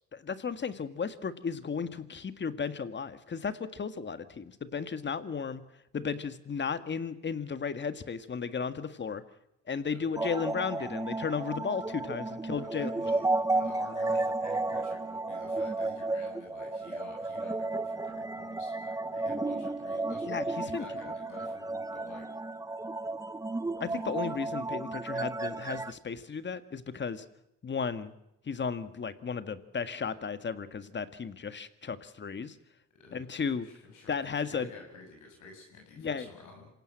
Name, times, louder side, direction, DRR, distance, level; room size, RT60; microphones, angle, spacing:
voice 1, 0.1-5.6 5.9-9.2 9.7-12.9 20.3-20.9 23.8-27.3 27.6-28.1 28.5-32.6 33.1-33.7 34.1-34.7 36.0-36.3, left 6 dB, 35° left, 11 dB, 1.8 m, -34 dB
sound 1, 10.2-25.9, right 2 dB, 10° right, 0.8 m, -33 dB
voice 2, 12.4-22.3 33.0-33.3 33.6-36.7, left 3 dB, 80° left, 1 dB, 7.7 m, -51 dB
27.0 x 17.0 x 7.8 m, 0.84 s
cardioid pair, 90°, 30 cm